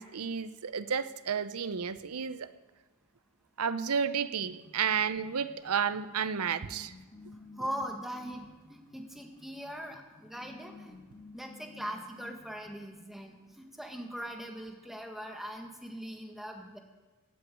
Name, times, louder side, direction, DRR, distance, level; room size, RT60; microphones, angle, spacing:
voice 1, 0.0-2.5 3.6-6.9, right 7 dB, 85° right, 14 dB, 0.7 m, -32 dB
sound 1, 4.4-12.9, left 2 dB, 25° left, 3.0 m, -54 dB
voice 2, 7.6-11.0 11.3-16.8, equal, ahead, 2 dB, 1.7 m, -41 dB
16.0 x 9.2 x 8.4 m, 1.3 s
head